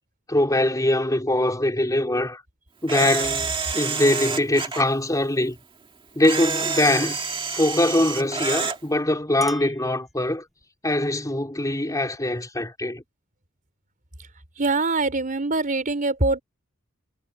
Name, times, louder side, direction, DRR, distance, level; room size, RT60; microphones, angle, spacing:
voice 1, 0.3-2.4 2.8-5.6 6.2-7.2 7.5-10.4 10.8-13.0, left 1 dB, 15° left, 3.6 m, -22 dB
Camera, 2.9-4.8 6.2-8.8, right 5 dB, 25° right, 1.8 m, -28 dB
Chink clink, 9.0-10.7, equal, ahead, 7.6 m, -45 dB
voice 2, 14.6-16.4, right 3 dB, 40° right, 4.1 m, -23 dB
head